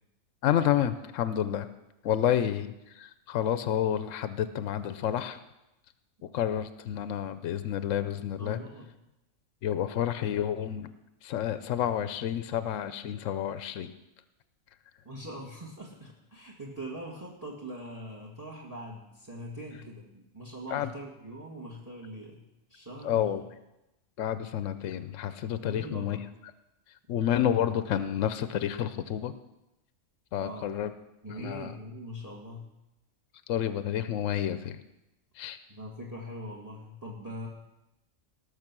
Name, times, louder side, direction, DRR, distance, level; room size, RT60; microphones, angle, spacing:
voice 1, 0.4-1.7 2.0-2.7 2.9-5.4 6.2-8.6 9.6-10.9 11.2-13.9 20.7-20.9 23.0-23.4 24.2-26.2 27.1-29.3 30.3-30.9 31.4-31.7 33.5-34.8 35.4-35.6, left 10 dB, 80° left, 12 dB, 1.0 m, -29 dB
voice 2, 8.4-8.9 15.0-22.4 22.7-23.3 25.6-26.2 30.4-30.7 31.2-32.7 35.7-37.5, equal, 15° right, 0 dB, 1.7 m, -42 dB
19.0 x 6.6 x 6.0 m, 0.92 s
omnidirectional pair, 1.3 m